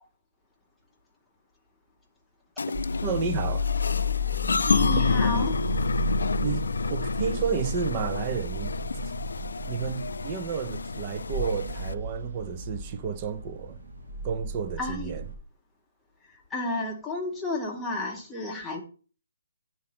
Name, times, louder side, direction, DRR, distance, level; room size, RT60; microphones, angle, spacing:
sound 1, 2.6-11.9, left 4 dB, 85° left, 0.4 m, -29 dB
sound 2, 2.7-15.3, left 1 dB, 50° right, 3.7 m, -33 dB
voice 1, 3.0-3.7 6.4-8.7 9.7-13.8 14.2-15.3, right 6 dB, 20° right, 0.4 m, -31 dB
voice 2, 4.7-5.5 14.8-15.1 16.5-18.8, left 2 dB, ahead, 0.8 m, -31 dB
9.5 x 3.8 x 5.6 m
hypercardioid pair, 180°, 0 cm